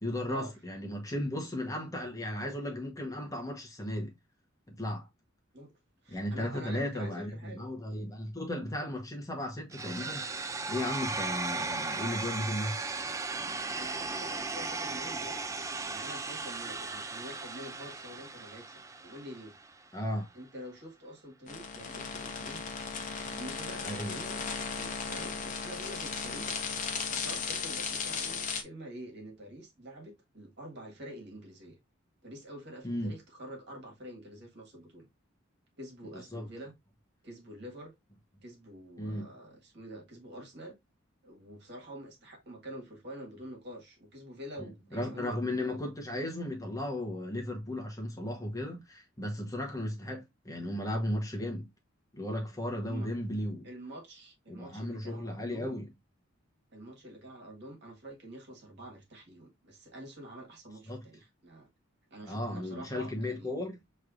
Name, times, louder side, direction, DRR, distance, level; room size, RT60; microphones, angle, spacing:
voice 1, 0.0-4.1 4.7-5.1 6.1-10.2 10.7-12.8 19.9-20.3 23.8-24.2 32.8-33.1 36.3-36.4 39.0-39.3 44.6-51.7 52.1-53.7 54.5-55.9 60.9-61.0 62.2-63.8, left 1 dB, 15° left, 1.1 m, -35 dB
voice 2, 6.0-7.6 13.8-15.6 15.8-19.5 20.3-22.7 23.3-24.4 24.7-26.6 27.2-31.8 32.2-35.1 35.8-36.7 37.2-37.9 38.4-40.8 41.2-45.8 52.8-53.1 53.6-55.8 56.7-61.7 62.1-63.5, right 1 dB, 60° right, 1.7 m, -47 dB
sound 1, 9.7-19.7, right 3 dB, 15° right, 0.4 m, -36 dB
sound 2, 21.5-28.6, left 5 dB, 40° left, 0.9 m, -36 dB
6.4 x 3.2 x 2.5 m
head